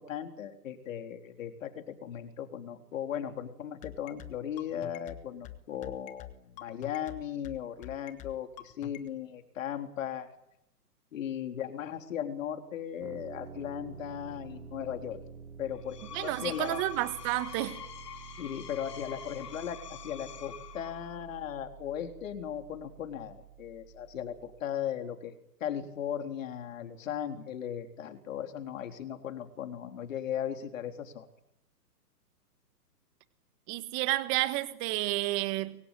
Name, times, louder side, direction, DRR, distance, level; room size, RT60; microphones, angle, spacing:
voice 1, 0.0-10.3 11.1-15.2 15.6-16.8 18.4-25.3 25.6-31.3, left 9 dB, 50° left, 6 dB, 3.8 m, -37 dB
sound 1, 3.8-9.1, left 15 dB, 15° left, 1.3 m, -45 dB
sound 2, 13.0-24.6, right 7 dB, 60° right, 4.8 m, -49 dB
Screech, 15.8-21.2, left 9 dB, 70° left, 3.2 m, -46 dB
voice 2, 16.1-17.8 33.7-35.8, right 17 dB, 20° right, 12 dB, 1.6 m, -30 dB
24.5 x 23.5 x 9.2 m, 0.80 s
hypercardioid pair, 150°, 49 cm